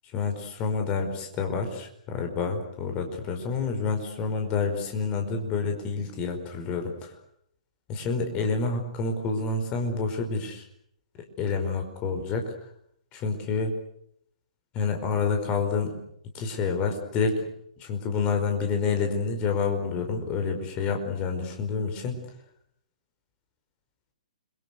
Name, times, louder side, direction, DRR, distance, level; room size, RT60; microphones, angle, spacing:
voice 1, 0.1-6.9 7.9-10.6 11.4-12.5 13.1-13.7 14.7-15.9 16.3-17.4 17.9-22.2, left 4 dB, 25° left, 5 dB, 5.0 m, -28 dB
29.5 x 23.5 x 6.7 m, 0.71 s
figure-of-eight pair, 120°, 4 cm